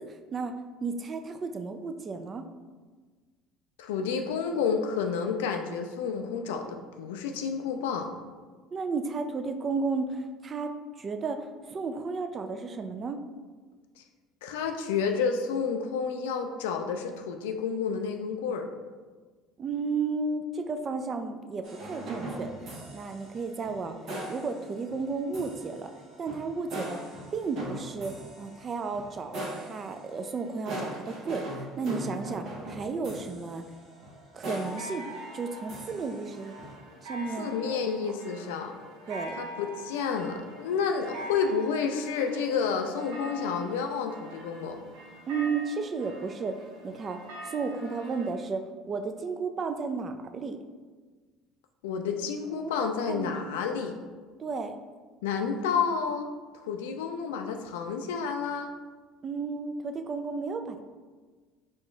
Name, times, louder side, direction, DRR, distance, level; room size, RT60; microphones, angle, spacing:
voice 1, 0.1-0.5 0.8-2.5 8.7-10.7 11.0-13.2 19.6-24.0 24.3-25.9 26.2-27.0 27.3-31.5 31.8-33.6 34.3-35.1 35.3-36.5 37.0-37.8 39.1-39.4 45.3-50.6 53.1-53.6 54.4-54.8 59.2-60.8, right 4 dB, 40° right, 7 dB, 0.3 m, -33 dB
voice 2, 3.8-8.1 14.4-18.7 37.4-38.7 39.4-44.8 51.8-53.9 55.2-56.3 56.5-58.7, left 6 dB, 90° left, 5 dB, 0.3 m, -30 dB
sound 1, 21.6-36.7, right 1 dB, 65° right, 1.0 m, -41 dB
sound 2, 34.6-48.3, equal, 85° right, 0.8 m, -44 dB
4.2 x 2.3 x 3.1 m, 1.4 s
supercardioid pair, 85°, 0 cm